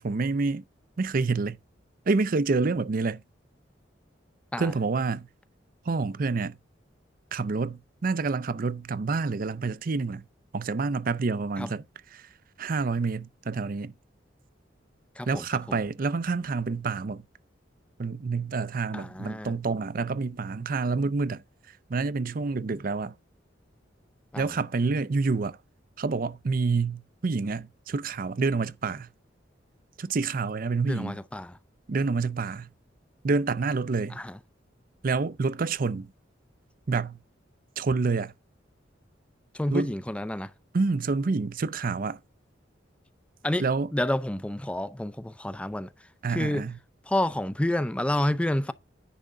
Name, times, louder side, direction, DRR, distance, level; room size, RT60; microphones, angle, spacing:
voice 1, 0.0-0.6 1.0-1.6 2.1-3.2 4.6-5.3 5.9-6.6 7.3-10.3 10.5-11.8 12.1-12.3 12.6-13.9 15.3-17.2 18.0-21.4 21.9-23.1 24.4-25.6 26.0-29.1 30.0-31.2 31.9-32.7 33.2-34.2 35.0-36.1 36.9-37.2 37.8-38.3 39.7-40.0 40.7-42.2 43.6-43.9 46.2-46.8, right 4 dB, 50° right, 0.5 m, -28 dB
voice 2, 18.9-19.5 24.3-24.5 30.8-31.6 34.2-34.4 39.5-40.5 43.4-43.7 43.9-45.9 46.3-46.7 47.1-48.7, left 1 dB, 5° left, 0.5 m, -29 dB
10.0 x 3.7 x 6.7 m
head